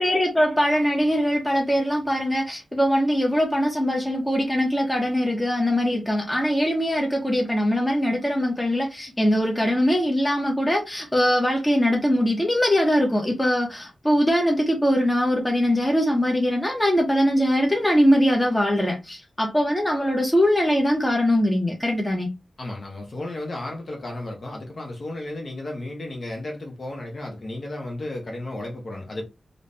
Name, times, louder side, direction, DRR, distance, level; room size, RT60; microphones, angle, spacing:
voice 1, 0.0-22.3, equal, 10° left, 0.9 m, -22 dB
voice 2, 22.6-29.2, left 1 dB, 40° left, 1.0 m, -33 dB
3.1 x 2.7 x 3.3 m
wide cardioid pair, 175°, 0 cm